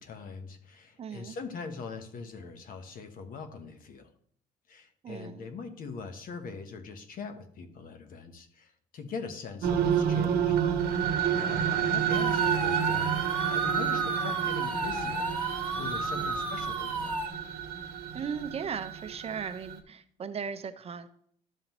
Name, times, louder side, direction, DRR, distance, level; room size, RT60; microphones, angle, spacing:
voice 1, 0.0-4.1 4.7-10.6 11.0-15.4 15.7-17.2, left 5 dB, 55° left, 8 dB, 1.1 m, -42 dB
voice 2, 1.0-1.4 5.0-5.5 16.2-16.4 18.1-21.1, right 6 dB, 35° right, 10 dB, 0.7 m, -37 dB
sound 1, 9.6-19.8, right 8 dB, 65° right, 1.1 m, -29 dB
sound 2, 12.1-17.3, right 2 dB, 10° left, 1.8 m, -34 dB
12.5 x 5.6 x 3.0 m, 0.65 s
cardioid pair, 110°, 17 cm